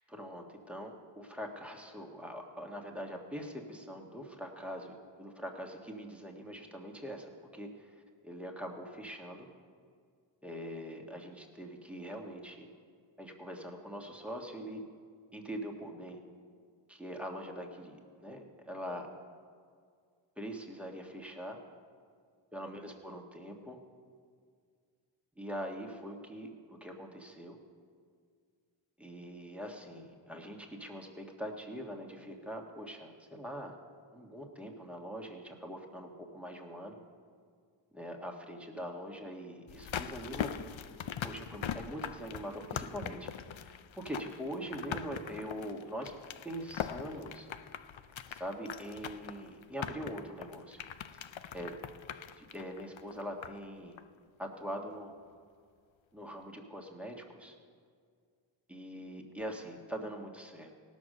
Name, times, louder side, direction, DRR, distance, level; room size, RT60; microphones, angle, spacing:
voice 1, 0.1-9.5 10.4-12.7 13.2-14.8 15.3-16.2 16.9-19.1 20.4-21.6 22.5-23.8 25.4-27.6 29.0-33.8 34.1-37.0 37.9-40.5 41.2-43.3 43.6-46.1 46.4-47.5 48.3-50.8 51.1-51.2 51.5-51.7 52.4-54.0 54.4-55.1 56.1-57.5 58.7-60.7, equal, 5° right, 1 dB, 1.5 m, -43 dB
sound 1, 39.7-53.7 54.0-54.1, left 8 dB, 80° left, 0.6 m, -41 dB
17.5 x 6.3 x 6.6 m, 2.1 s
wide cardioid pair, 50°, 45 cm